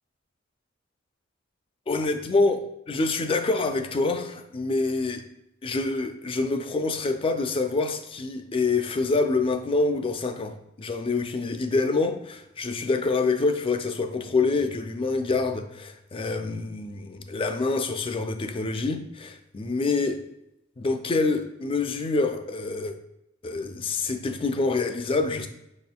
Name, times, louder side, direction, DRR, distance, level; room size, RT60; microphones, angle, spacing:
voice 1, 1.9-5.2 5.6-20.2 20.8-23.0 23.4-25.5, left 3 dB, 30° left, 7 dB, 0.4 m, -26 dB
5.6 x 4.2 x 2.2 m, 0.84 s
head